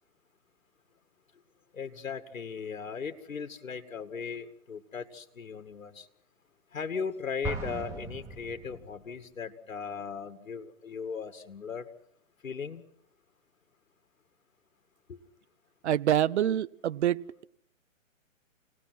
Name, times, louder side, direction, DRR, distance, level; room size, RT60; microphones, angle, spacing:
voice 1, 1.7-6.1 6.7-11.9 12.4-12.9 15.1-15.2, left 6 dB, 90° left, 2.2 m, -38 dB
Explosion, 7.4-9.2, right 3 dB, 5° right, 2.6 m, -38 dB
voice 2, 15.8-17.2, right 11 dB, 60° right, 0.8 m, -26 dB
28.5 x 19.0 x 6.1 m
hypercardioid pair, 155°, 39 cm